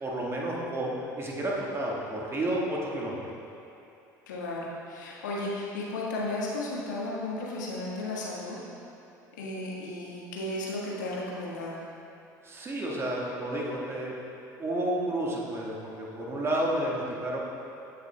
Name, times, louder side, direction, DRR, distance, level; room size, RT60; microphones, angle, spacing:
voice 1, 0.0-3.2 12.4-14.1 14.6-17.4, right 1 dB, 25° right, -3 dB, 1.6 m, -31 dB
voice 2, 4.3-8.6 9.4-11.8, left 2 dB, 70° left, -5 dB, 1.6 m, -34 dB
16.0 x 5.8 x 2.3 m, 2.9 s
figure-of-eight pair, 65°, 10 cm